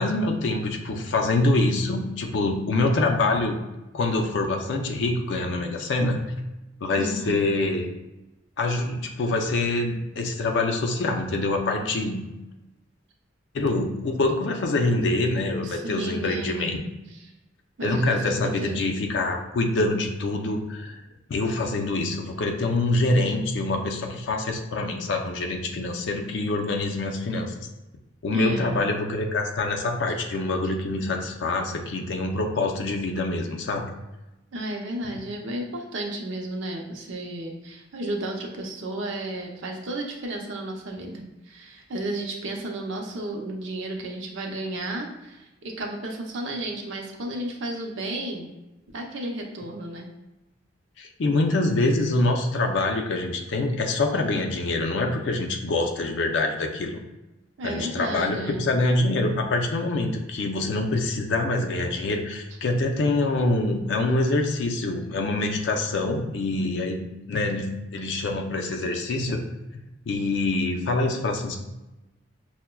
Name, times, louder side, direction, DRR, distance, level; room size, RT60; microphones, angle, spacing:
voice 1, 0.0-3.6 3.9-6.2 6.8-7.9 8.6-12.2 13.5-16.8 17.8-21.0 21.3-27.5 28.2-33.8 51.0-57.0 57.6-67.0 67.3-69.4 70.1-71.6, left 2 dB, 70° left, 3 dB, 0.4 m, -25 dB
voice 2, 7.0-7.5 15.6-16.8 17.8-18.9 28.3-28.9 34.5-48.5 48.9-50.1 57.6-58.7, right 1 dB, 80° right, 1 dB, 0.7 m, -33 dB
5.7 x 2.1 x 2.2 m, 1.0 s
head